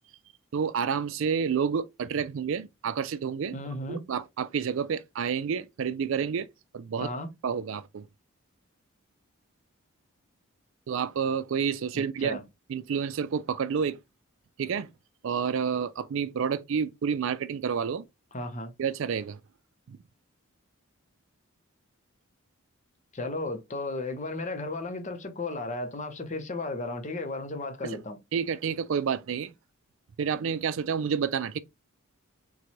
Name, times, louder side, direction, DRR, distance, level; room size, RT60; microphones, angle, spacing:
voice 1, 0.5-3.6 3.9-6.5 6.7-7.1 7.4-8.1 10.9-12.4 12.7-14.0 14.6-14.9 15.2-18.0 18.8-19.4 19.9-20.0 27.8-28.0 28.3-29.5 30.2-31.6, right 6 dB, 65° right, 0.3 m, -29 dB
voice 2, 3.5-4.0 7.0-7.3 11.9-12.4 18.3-18.7 23.1-28.2, left 2 dB, 35° left, 0.7 m, -34 dB
4.1 x 2.2 x 2.9 m
head